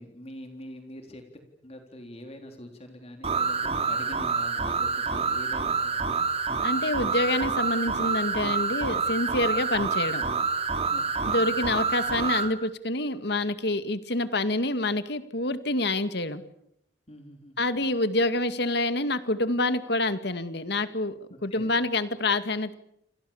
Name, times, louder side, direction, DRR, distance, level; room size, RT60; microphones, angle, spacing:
voice 1, 0.0-6.0 10.9-11.4 17.1-17.7 21.3-21.7, equal, 35° left, 4 dB, 3.7 m, -44 dB
sound 1, 3.2-12.5, right 5 dB, 35° right, 3.1 m, -27 dB
voice 2, 6.6-10.3 11.2-16.4 17.6-22.7, left 2 dB, 65° left, 11 dB, 2.1 m, -27 dB
28.5 x 27.5 x 7.3 m, 0.76 s
head